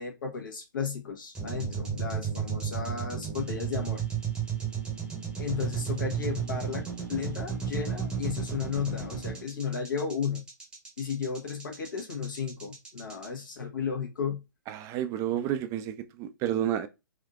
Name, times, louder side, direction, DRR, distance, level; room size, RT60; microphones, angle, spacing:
voice 1, 0.0-4.0 5.4-10.4 11.0-14.4, left 6 dB, 70° left, 1.2 m, -34 dB
sound 1, 1.3-13.3, right 7 dB, 10° right, 0.9 m, -33 dB
voice 2, 14.7-16.9, right 11 dB, 25° right, 0.4 m, -30 dB
3.5 x 2.6 x 2.4 m
figure-of-eight pair, 120°, 11 cm